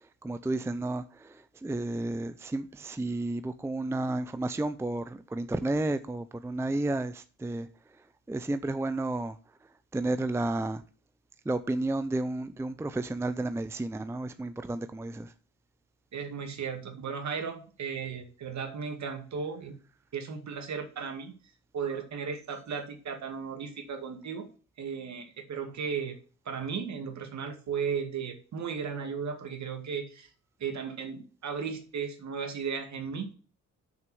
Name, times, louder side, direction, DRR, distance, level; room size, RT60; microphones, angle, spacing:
voice 1, 0.2-7.7 8.3-9.4 9.9-10.8 11.5-15.3, right 2 dB, 10° right, 0.5 m, -32 dB
voice 2, 16.1-19.7 20.1-21.3 21.7-24.5 24.8-26.2 26.5-30.3 30.6-33.3, right 6 dB, 55° right, 2.2 m, -35 dB
6.5 x 5.9 x 6.9 m
cardioid pair, 90°, 33 cm